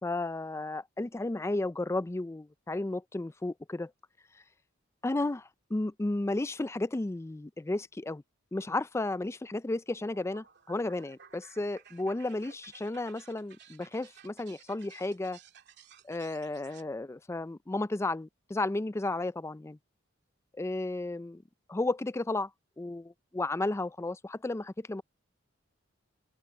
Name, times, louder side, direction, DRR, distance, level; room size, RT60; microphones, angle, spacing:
voice 1, 0.0-3.9 5.0-8.2 8.5-15.4 16.0-19.8 20.6-21.4 21.7-22.5 22.8-25.0, left 2 dB, 15° left, 0.4 m, -33 dB
sound 1, 9.9-16.9, right 7 dB, 60° right, 2.7 m, -56 dB
open air
head